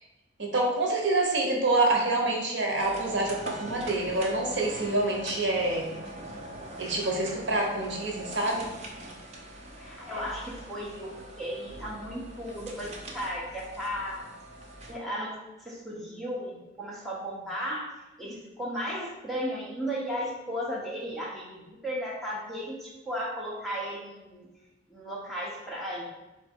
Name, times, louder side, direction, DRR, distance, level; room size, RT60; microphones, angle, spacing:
voice 1, 0.4-5.9 6.8-8.7, right 2 dB, 70° right, 0 dB, 0.9 m, -27 dB
sound 1, 2.8-14.9, right 1 dB, 35° right, 0.6 m, -43 dB
voice 2, 9.8-11.1 11.4-14.2 14.9-17.9 18.2-24.5 24.9-26.0, equal, ahead, -6 dB, 0.9 m, -35 dB
3.6 x 3.3 x 4.4 m, 1.0 s
head